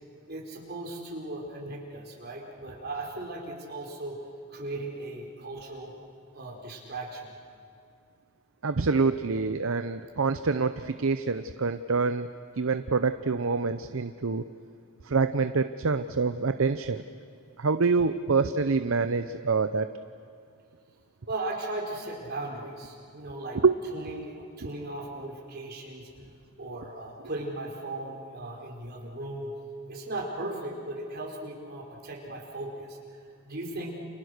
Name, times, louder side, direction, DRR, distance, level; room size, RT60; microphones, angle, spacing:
voice 1, 0.3-4.2 4.5-5.9 6.3-7.3 21.3-23.6 23.9-26.1 26.6-29.5 29.9-33.2 33.5-34.0, right 2 dB, 45° right, -1 dB, 4.7 m, -37 dB
voice 2, 8.6-12.3 12.6-14.4 15.0-17.0 17.6-19.9 23.6-23.7, right 4 dB, 65° right, 11 dB, 0.7 m, -26 dB
29.5 x 28.5 x 6.6 m, 2.4 s
head